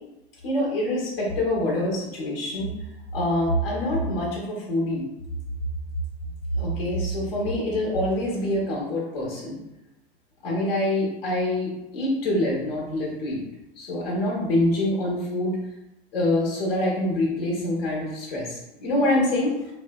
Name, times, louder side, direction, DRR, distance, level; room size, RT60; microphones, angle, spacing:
voice 1, 0.4-2.7 3.1-5.0 6.6-9.6 10.4-13.4 13.8-15.6 16.1-19.5, left 1 dB, 80° left, -3 dB, 1.0 m, -25 dB
2.6 x 2.1 x 2.3 m, 0.92 s
hypercardioid pair, 90°, 29 cm